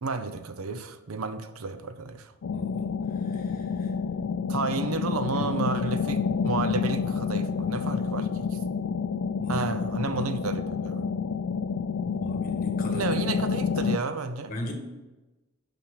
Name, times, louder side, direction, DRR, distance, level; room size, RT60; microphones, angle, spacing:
voice 1, 0.0-2.3 4.5-8.6 9.5-11.1 12.9-14.5, right 4 dB, 80° right, 10 dB, 0.7 m, -32 dB
sound 1, 2.4-14.0, left 5 dB, 65° left, 0.4 m, -29 dB
voice 2, 2.5-2.9 3.2-3.9 5.3-5.5 9.4-10.2 12.0-13.1 14.5-14.7, equal, 45° left, 2 dB, 1.7 m, -39 dB
6.0 x 5.8 x 6.6 m, 1.1 s
head